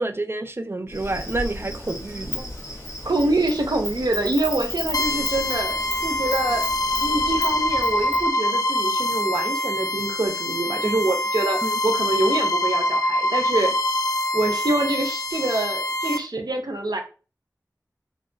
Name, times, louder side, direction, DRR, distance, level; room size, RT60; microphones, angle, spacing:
voice 1, 0.0-2.5 11.6-11.8, right 2 dB, 35° right, 0.4 m, -29 dB
Insect, 0.9-8.3, left 1 dB, 45° left, 1.4 m, -34 dB
voice 2, 3.0-6.6 7.0-13.7 14.3-17.0, right 2 dB, 80° right, 0.7 m, -25 dB
sound 1, 4.9-16.2, left 1 dB, 65° left, 0.5 m, -24 dB
3.3 x 2.9 x 2.6 m
wide cardioid pair, 45°, 7 cm